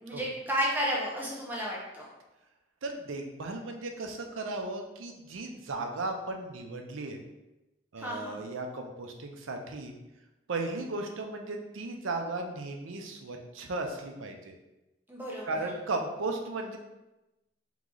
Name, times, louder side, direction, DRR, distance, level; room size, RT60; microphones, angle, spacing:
voice 1, 0.0-2.1 8.0-8.4 15.1-15.7, equal, 10° right, -4 dB, 0.6 m, -32 dB
voice 2, 2.8-7.2 7.9-9.9 10.5-14.6 15.5-16.8, right 2 dB, 90° right, 3 dB, 0.6 m, -36 dB
3.6 x 3.1 x 3.8 m, 1.0 s
head